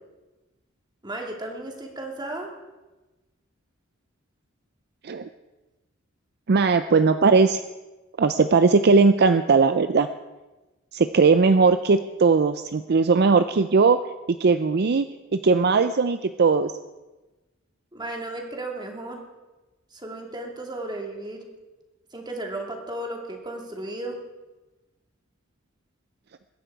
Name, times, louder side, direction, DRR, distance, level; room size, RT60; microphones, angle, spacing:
voice 1, 1.0-2.5 17.9-19.2 19.9-21.4 22.1-24.2, right 1 dB, 20° right, 1 dB, 2.4 m, -34 dB
voice 2, 6.5-7.6 8.2-10.1 10.9-14.0 14.4-15.1 15.3-16.7, right 4 dB, 50° right, 10 dB, 0.5 m, -19 dB
22.0 x 10.0 x 4.7 m, 1.1 s
head